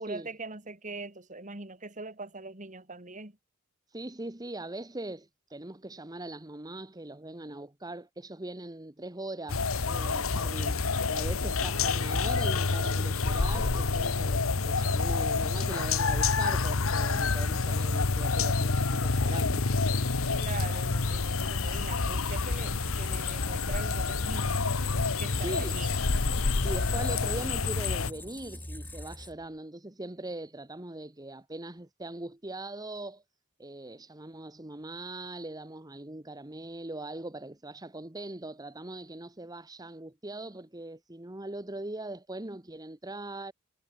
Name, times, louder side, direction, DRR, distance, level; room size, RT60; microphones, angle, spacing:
voice 1, 0.0-3.3 20.3-24.7 25.2-25.9, right 3 dB, 35° right, 3.6 m, -42 dB
voice 2, 3.9-19.7 25.3-25.8 26.6-33.2 33.6-43.5, right 2 dB, 20° right, 1.2 m, -41 dB
sound 1, 9.5-28.1, left 4 dB, 70° left, 1.1 m, -28 dB
Squeak, 21.7-29.6, left 1 dB, 10° left, 3.6 m, -44 dB
head